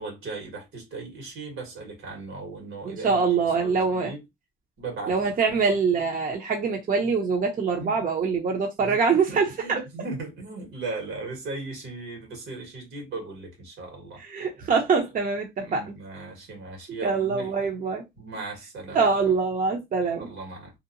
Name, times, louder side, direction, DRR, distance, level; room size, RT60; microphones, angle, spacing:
voice 1, 0.0-3.2 3.6-4.2 4.8-5.1 7.8-7.9 8.8-9.0 9.3-14.2 15.6-17.5 18.2-19.1 20.2-20.7, right 3 dB, 85° right, 1.6 m, -37 dB
voice 2, 2.8-4.1 5.1-9.8 14.2-15.9 17.0-18.0 18.9-20.3, right 5 dB, 45° right, 0.7 m, -24 dB
2.8 x 2.0 x 2.6 m
cardioid pair, 90°, 20 cm